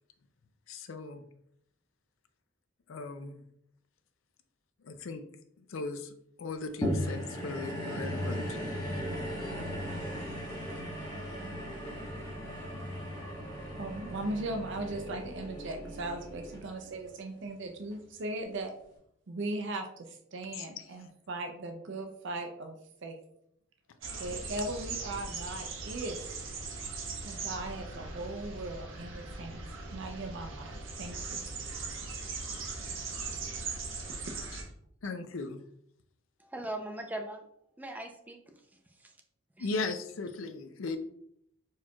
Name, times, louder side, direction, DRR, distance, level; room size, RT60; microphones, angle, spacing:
voice 1, 0.7-1.2 2.9-3.4 4.8-5.2 5.7-6.1 6.4-8.6 20.5-20.7 35.0-35.6 39.6-41.0, left 3 dB, 85° left, 9 dB, 0.5 m, -37 dB
sound 1, 6.8-17.3 17.9-18.0, equal, 20° left, 1.3 m, -37 dB
sound 2, 8.2-17.3, right 1 dB, 55° left, 1.7 m, -47 dB
voice 2, 13.8-18.7 19.3-22.7 23.0-23.2 24.2-26.2 27.2-29.6 29.9-31.4 33.5-33.6 34.2-34.5, right 2 dB, 65° right, 5 dB, 0.5 m, -38 dB
sound 3, 24.0-34.6, right 4 dB, 90° right, 1.0 m, -40 dB
voice 3, 36.4-37.4 37.8-38.4 39.0-39.1 39.6-39.7, right 1 dB, 10° right, 4 dB, 0.5 m, -39 dB
4.5 x 4.4 x 2.3 m, 0.72 s
head